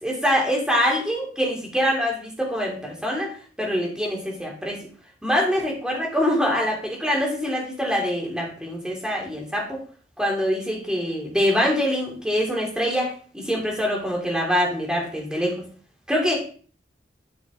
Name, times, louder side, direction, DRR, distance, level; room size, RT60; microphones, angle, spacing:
voice 1, 0.0-3.3 3.6-4.8 5.2-9.8 10.2-15.5 16.1-16.4, equal, 5° right, -2 dB, 3.2 m, -24 dB
13.0 x 6.2 x 3.8 m, 0.42 s
head